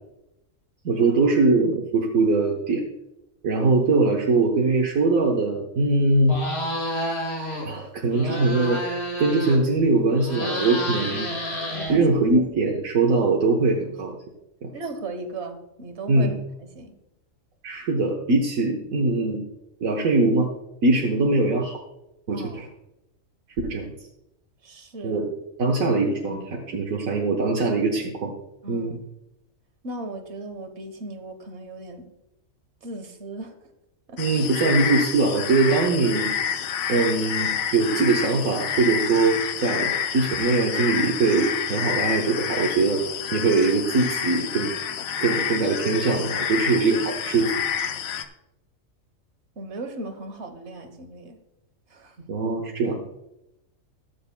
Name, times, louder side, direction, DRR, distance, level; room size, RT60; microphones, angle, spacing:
voice 1, 0.8-2.8 3.4-6.4 7.6-8.8 9.2-11.3 11.9-14.2 14.6-14.7 16.1-16.4 17.6-19.4 19.8-20.5 20.8-21.8 22.3-22.6 23.6-23.9 25.0-25.3 25.6-28.3 28.7-29.0 34.2-36.3 36.9-43.0 43.3-44.7 45.2-47.6 52.3-53.0, right 3 dB, 85° right, -1 dB, 1.5 m, -22 dB
sound 1, 6.2-7.7 8.0-9.8 10.1-12.4, equal, 50° left, 2.4 m, -29 dB
voice 2, 11.7-12.5 14.7-16.3 16.6-16.9 22.3-22.6 24.6-25.2 28.6-28.9 29.8-32.1 32.8-33.6 34.1-34.2 49.6-51.4 51.9-52.3, right 2 dB, 60° right, 7 dB, 1.4 m, -37 dB
sound 2, 34.2-48.3, left 8 dB, 85° left, 1.1 m, -28 dB
20.5 x 7.2 x 2.2 m, 0.90 s
omnidirectional pair, 1.4 m